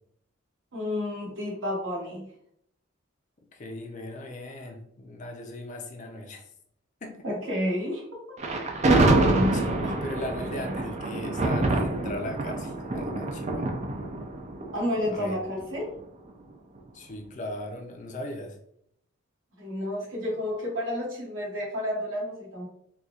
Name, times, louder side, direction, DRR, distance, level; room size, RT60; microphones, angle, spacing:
voice 1, 0.7-2.3 7.2-8.2 14.7-15.9 19.6-22.7, left 1 dB, 65° right, -4 dB, 1.4 m, -30 dB
voice 2, 3.5-6.4 7.0-7.2 9.4-13.6 15.1-15.4 16.9-18.6, left 1 dB, 35° left, 2 dB, 0.5 m, -38 dB
Thunder, 8.4-15.6, right 2 dB, 35° right, 0.4 m, -26 dB
4.2 x 2.3 x 2.4 m, 0.71 s
head